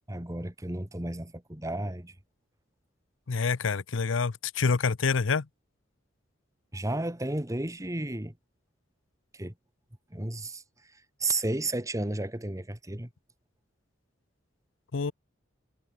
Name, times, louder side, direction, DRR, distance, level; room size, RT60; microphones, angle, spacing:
voice 1, 0.1-2.2 6.7-8.3 9.3-9.5 10.1-13.1, right 2 dB, 15° right, 1.7 m, -33 dB
voice 2, 3.3-5.5 14.9-15.1, left 4 dB, 85° left, 0.7 m, -27 dB
head